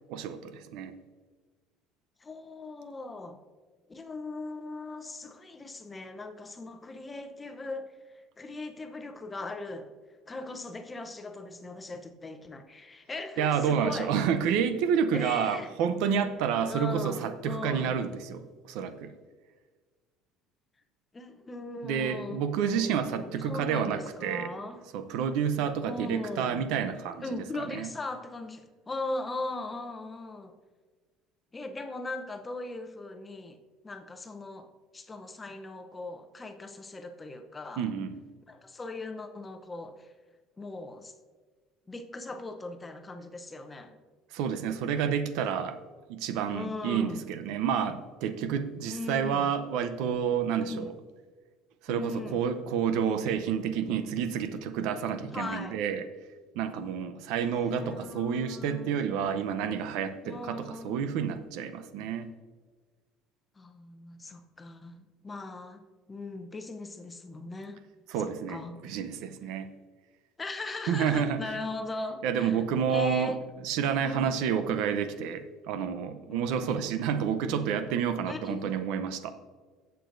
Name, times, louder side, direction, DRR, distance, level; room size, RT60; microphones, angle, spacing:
voice 1, 0.1-0.9 13.4-19.1 21.8-24.5 24.9-27.2 27.7-27.9 37.8-38.1 44.3-45.8 46.1-50.9 51.8-56.0 56.5-62.3 68.1-68.6 68.8-69.7 70.9-71.4 72.2-73.3 73.6-79.3, right 7 dB, 75° right, 10 dB, 0.7 m, -29 dB
voice 2, 2.2-3.4 3.9-9.9 10.3-14.2 15.1-15.7 16.7-18.0 21.1-24.8 25.8-26.6 27.2-30.5 31.5-33.6 33.8-37.9 38.5-40.1 40.6-41.1 41.9-44.0 46.5-47.2 48.9-49.5 50.6-51.0 51.9-52.4 55.3-55.8 57.4-58.9 60.2-61.0 63.6-67.8 68.2-69.1 70.4-72.6 72.9-73.4 74.0-74.3 76.3-77.0 78.3-78.7, left 2 dB, 15° left, 7 dB, 0.7 m, -39 dB
15.5 x 6.8 x 2.6 m, 1.4 s
cardioid pair, 140°, 0 cm